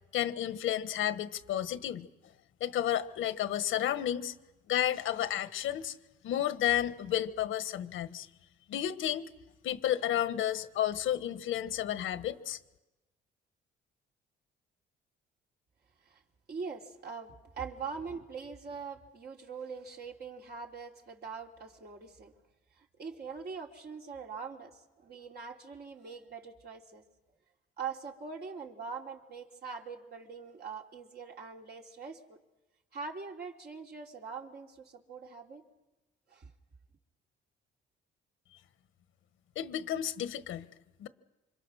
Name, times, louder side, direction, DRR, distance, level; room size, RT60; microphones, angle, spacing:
voice 1, 0.1-2.1 2.6-4.3 4.7-5.9 6.2-8.3 8.7-9.3 9.6-12.6 39.5-40.7 41.0-41.1, left 11 dB, 80° left, 11 dB, 1.4 m, -32 dB
voice 2, 16.5-22.3 22.8-27.1 27.8-32.4 32.9-35.6 36.3-36.5, right 5 dB, 55° right, 0 dB, 3.3 m, -43 dB
28.5 x 26.0 x 6.4 m, 1.0 s
cardioid pair, 90°, 20 cm